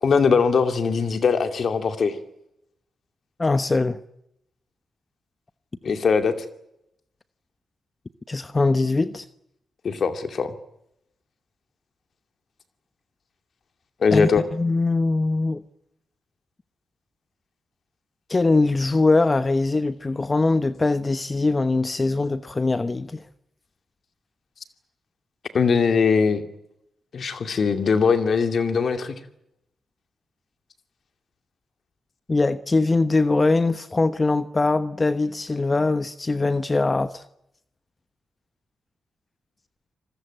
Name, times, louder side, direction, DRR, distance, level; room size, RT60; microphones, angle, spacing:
voice 1, 0.0-2.2 5.8-6.3 9.8-10.5 14.0-14.4 25.5-26.4 27.1-29.2, left 5 dB, 65° left, 8 dB, 2.5 m, -21 dB
voice 2, 3.4-4.0 8.3-9.2 14.1-15.6 18.3-23.2 32.3-37.2, left 3 dB, 35° left, 13 dB, 1.0 m, -22 dB
26.0 x 20.5 x 9.1 m, 0.80 s
supercardioid pair, 45°, 0 cm